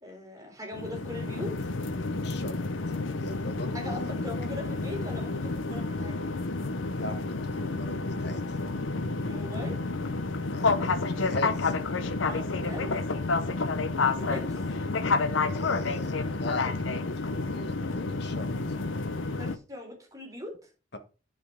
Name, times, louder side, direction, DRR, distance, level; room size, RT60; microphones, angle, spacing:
voice 1, 0.0-1.6 3.7-6.3 9.3-9.8 12.2-12.9 14.2-14.6 19.4-20.5, left 1 dB, 20° right, 3.8 m, -40 dB
sound 1, 0.7-19.6, left 3 dB, 85° left, 0.8 m, -30 dB
voice 2, 2.1-2.6 3.1-4.2 6.9-7.3 7.5-8.4 10.5-11.7 15.5-17.0 17.3-18.5 20.9-21.0, left 1 dB, 60° left, 1.5 m, -39 dB
10.0 x 5.4 x 5.0 m
head